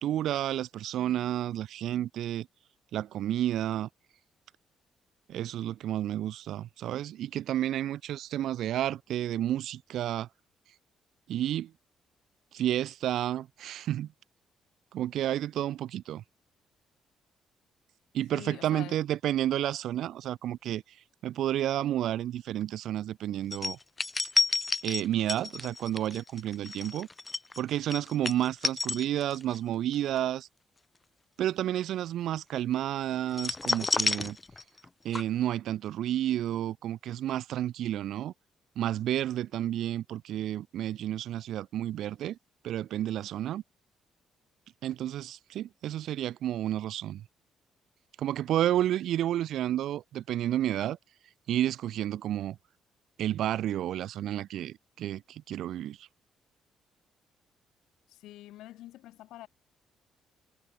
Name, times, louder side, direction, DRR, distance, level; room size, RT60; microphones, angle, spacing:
voice 1, 0.0-2.5 2.9-3.9 5.3-10.3 11.3-11.7 12.5-14.1 14.9-16.2 18.1-20.8 21.2-23.8 24.8-27.1 27.6-30.5 31.4-34.4 35.0-38.3 38.8-42.4 42.6-43.6 44.8-47.2 48.2-51.0 51.5-52.6 53.2-56.1, right 12 dB, 75° right, 0.4 m, -31 dB
voice 2, 18.3-19.0 58.1-59.5, left 15 dB, 90° left, 0.5 m, -45 dB
sound 1, 23.5-29.6 29.9-30.2 33.3-34.9 35.1-35.2, left 3 dB, 20° left, 0.4 m, -30 dB
cardioid pair, 90°, 0 cm